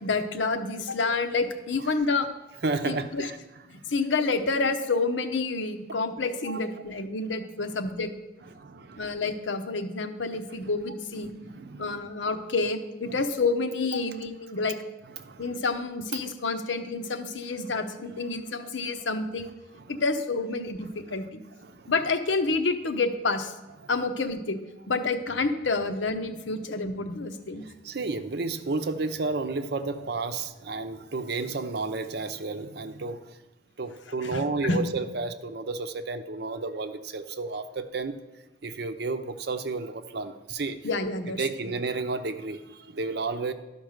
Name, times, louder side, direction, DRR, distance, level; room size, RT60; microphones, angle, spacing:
voice 1, 0.0-2.3 2.8-3.3 3.7-8.1 9.0-11.3 11.8-14.8 15.4-19.5 19.9-21.4 21.9-23.6 23.9-24.6 24.9-27.6 34.2-34.8 40.8-41.7, left 3 dB, 80° left, 8 dB, 0.8 m, -28 dB
voice 2, 2.6-3.4 6.4-6.6 8.5-9.1 11.2-12.0 13.1-13.2 15.2-15.6 18.6-18.7 21.6-21.9 27.5-33.4 33.8-38.2 38.6-40.8 41.4-43.5, right 3 dB, 60° right, 10 dB, 0.7 m, -32 dB
12.0 x 5.4 x 6.5 m, 1.0 s
head